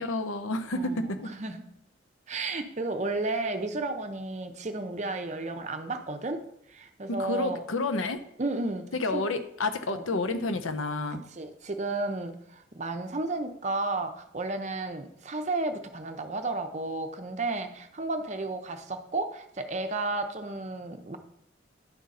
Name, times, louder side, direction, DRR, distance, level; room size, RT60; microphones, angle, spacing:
voice 1, 0.0-1.3 7.1-8.2 8.9-11.2, left 2 dB, 85° left, 9 dB, 0.7 m, -30 dB
voice 2, 0.7-1.6 2.3-6.4 6.7-7.6 8.4-9.2 9.9-10.0 11.3-21.2, right 2 dB, 35° right, 7 dB, 0.6 m, -33 dB
10.5 x 3.9 x 4.1 m, 0.76 s
head